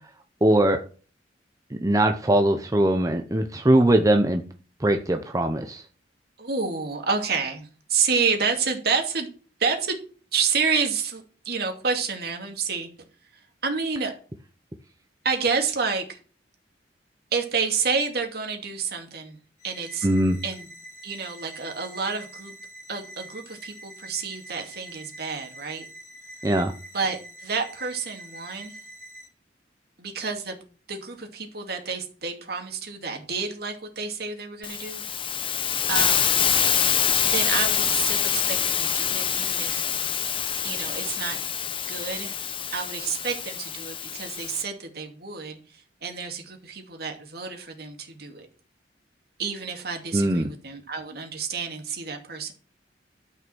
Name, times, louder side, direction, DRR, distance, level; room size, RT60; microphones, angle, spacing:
voice 1, 0.4-0.8 1.8-4.4 4.8-5.8 20.0-20.4 26.4-26.7 50.1-50.5, right 1 dB, 20° right, 5 dB, 0.7 m, -21 dB
voice 2, 6.4-9.3 9.6-10.0 10.3-12.9 13.3-14.1 15.2-16.2 17.3-19.4 19.6-20.1 20.4-20.7 21.0-22.5 22.9-25.9 26.9-28.8 30.0-30.6 30.9-35.0 35.9-36.4 37.2-39.8 40.6-41.4 41.9-42.4 42.7-48.5 49.4-52.5, right 5 dB, 60° right, 3 dB, 2.4 m, -29 dB
sound 1, 19.6-29.3, right 1 dB, 45° left, 7.2 m, -45 dB
Hiss, 34.6-44.6, left 8 dB, 30° left, 0.8 m, -25 dB
13.0 x 5.6 x 6.2 m, 0.39 s
head